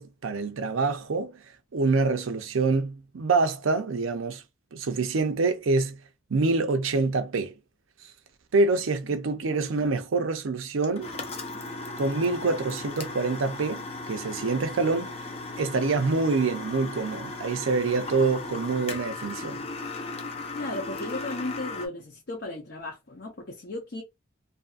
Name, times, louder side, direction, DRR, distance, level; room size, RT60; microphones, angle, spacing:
voice 1, 0.0-1.4 1.7-4.4 4.7-6.0 6.3-7.5 8.5-11.2 12.0-15.2 15.6-19.6, right 3 dB, 90° right, 0.5 m, -26 dB
voice 2, 9.4-9.9 20.5-24.0, left 2 dB, 55° left, 0.8 m, -36 dB
sound 1, 10.8-21.9, left 3 dB, 30° left, 0.5 m, -37 dB
2.7 x 2.5 x 2.4 m
head